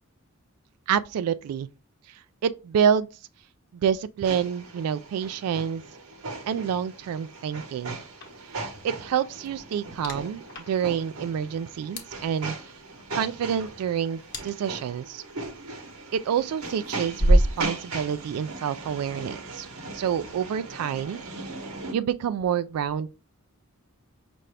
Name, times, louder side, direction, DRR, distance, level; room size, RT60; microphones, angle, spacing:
voice 1, 0.9-1.7 2.4-3.1 3.7-5.8 6.5-8.0 8.8-12.6 13.1-15.2 16.1-19.7 19.9-21.5 21.9-23.1, right 8 dB, 90° right, 0.3 m, -27 dB
sound 1, 4.2-21.9, right 3 dB, 75° right, 1.0 m, -39 dB
sound 2, 8.2-19.3, equal, 50° left, 0.9 m, -31 dB
5.6 x 2.6 x 3.2 m
head